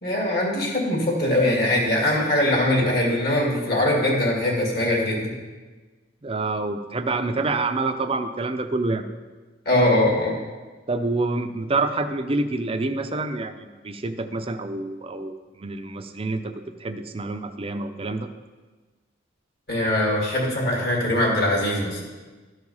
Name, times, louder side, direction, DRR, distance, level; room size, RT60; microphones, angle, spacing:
voice 1, 0.0-5.4 9.7-10.4 19.7-22.0, left 1 dB, 55° left, -2 dB, 2.3 m, -22 dB
voice 2, 6.2-9.0 10.9-18.3, right 3 dB, 30° right, 8 dB, 0.6 m, -27 dB
13.0 x 4.8 x 5.4 m, 1.3 s
head